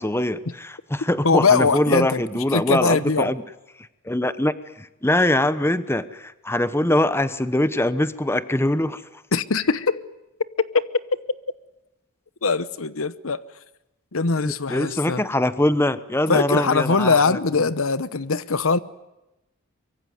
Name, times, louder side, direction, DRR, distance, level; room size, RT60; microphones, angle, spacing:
voice 1, 0.0-3.4 4.1-9.0 14.4-17.4, left 1 dB, 10° left, 1.0 m, -23 dB
voice 2, 1.2-2.2 2.5-3.3 9.3-10.0 10.7-10.8 12.4-13.4 14.1-15.2 16.3-18.8, left 4 dB, 75° left, 1.0 m, -21 dB
24.0 x 24.0 x 9.4 m
head